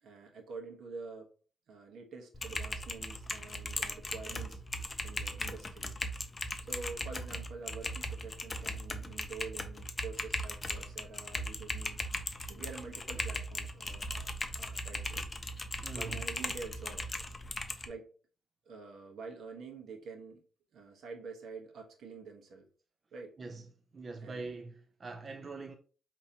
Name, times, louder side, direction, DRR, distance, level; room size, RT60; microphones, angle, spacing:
voice 1, 0.0-1.3 1.7-4.6 5.0-5.9 6.6-12.0 12.5-14.3 14.5-15.3 15.9-17.1 17.8-18.1 18.6-20.4 20.7-22.7 23.1-23.3 24.2-24.5, right 4 dB, 75° right, 1.1 m, -47 dB
Typing, 2.3-17.9, left 1 dB, 25° left, 0.5 m, -38 dB
voice 2, 15.8-16.3 23.4-23.7 23.9-25.7, right 3 dB, 35° right, 0.4 m, -43 dB
5.1 x 2.9 x 2.8 m
cardioid pair, 120°, 0 cm